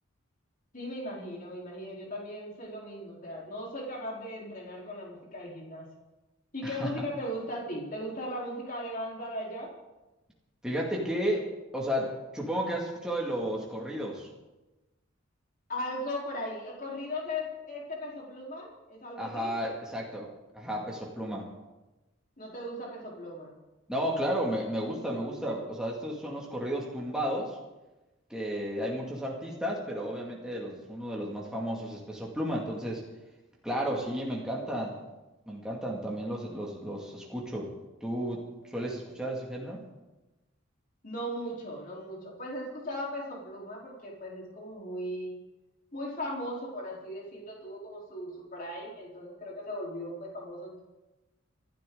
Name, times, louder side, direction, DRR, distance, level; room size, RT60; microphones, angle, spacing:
voice 1, 0.7-5.9 6.5-9.7 15.7-19.5 22.4-23.5 41.0-45.3 45.9-50.8, equal, 40° left, -3 dB, 4.1 m, -38 dB
voice 2, 10.6-11.5 11.7-14.3 19.2-20.3 20.5-21.5 23.9-27.6 28.3-33.0 33.6-34.9 35.5-37.7 38.0-38.4 38.7-39.8, equal, 5° right, -3 dB, 2.3 m, -33 dB
26.0 x 12.0 x 4.0 m, 1.1 s
head